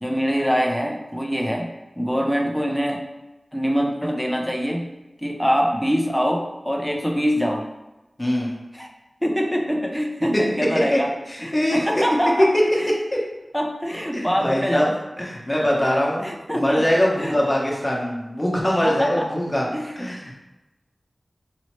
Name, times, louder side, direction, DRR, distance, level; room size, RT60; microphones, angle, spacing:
voice 1, 0.0-3.1 3.5-4.9 5.2-7.7 8.7-8.9 9.2-11.1 11.4-12.9 13.5-15.0 16.2-16.9 17.2-17.4 18.8-19.3 19.7-20.0, equal, 5° left, 2 dB, 0.4 m, -24 dB
voice 2, 8.2-8.5 10.9-11.0 11.3-11.9 13.1-13.2 14.1-16.2 16.5-19.7 20.0-20.3, equal, 20° left, -3 dB, 1.0 m, -23 dB
4.1 x 2.7 x 3.1 m, 1.0 s
wide cardioid pair, 55°, 0 cm